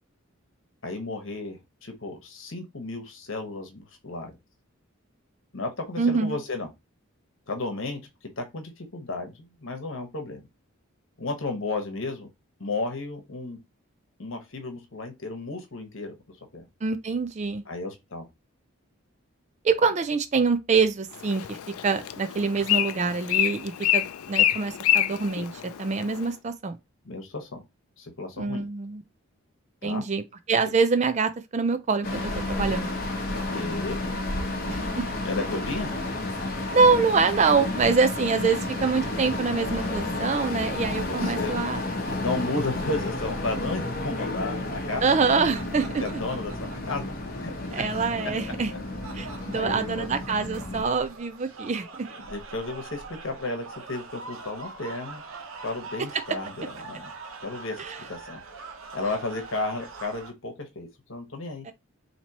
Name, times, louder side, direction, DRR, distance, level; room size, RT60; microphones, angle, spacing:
voice 1, 0.8-4.3 5.5-6.7 7.5-8.0 8.4-10.4 11.2-12.3 12.6-13.6 14.2-16.1 16.5-16.6 17.7-18.3 27.0-27.6 28.0-28.6 29.8-30.0 33.5-34.0 35.2-35.9 41.0-41.5 42.2-45.0 46.0-46.5 46.9-47.5 48.2-48.3 49.5-50.1 52.2-55.2 55.6-57.1 57.4-57.8 58.1-58.4 58.9-61.7, left 2 dB, 65° left, 1.1 m, -33 dB
voice 2, 6.0-6.4 16.8-17.6 19.6-21.6 21.8-26.8 28.4-29.0 29.8-33.0 34.7-35.0 36.7-41.9 45.0-46.0 47.7-48.7 49.1-52.1 57.8-58.0 61.6-61.7, right 4 dB, 35° right, 0.4 m, -25 dB
Bird, 21.1-26.3, left 12 dB, 90° left, 0.4 m, -27 dB
sound 1, 32.0-50.8, left 2 dB, 45° left, 0.9 m, -31 dB
sound 2, 44.9-60.3, right 4 dB, 75° right, 0.8 m, -44 dB
4.4 x 2.9 x 2.9 m
head